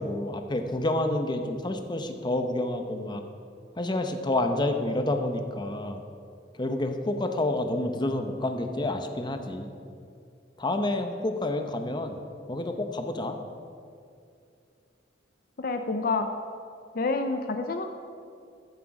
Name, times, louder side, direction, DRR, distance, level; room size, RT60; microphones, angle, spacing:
voice 1, 0.0-3.2 3.8-6.0 6.5-9.7 10.6-12.2 12.5-13.4, left 1 dB, 25° left, 6 dB, 0.8 m, -29 dB
voice 2, 15.6-16.3 16.9-17.9, left 3 dB, 55° left, 7 dB, 0.6 m, -28 dB
14.0 x 8.1 x 4.8 m, 2.4 s
head